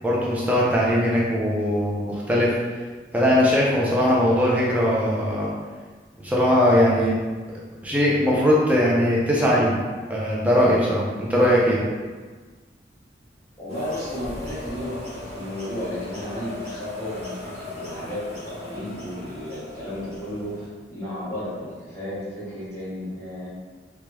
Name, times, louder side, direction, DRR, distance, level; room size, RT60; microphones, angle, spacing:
voice 1, 0.0-2.6 3.1-5.5 6.2-7.1 7.8-9.7 10.1-11.8, equal, 10° right, -6 dB, 0.5 m, -20 dB
voice 2, 13.6-23.5, left 1 dB, 15° left, -12 dB, 1.1 m, -33 dB
sound 1, 13.7-20.7, left 2 dB, 40° right, 1.1 m, -38 dB
3.2 x 2.2 x 3.1 m, 1.4 s
head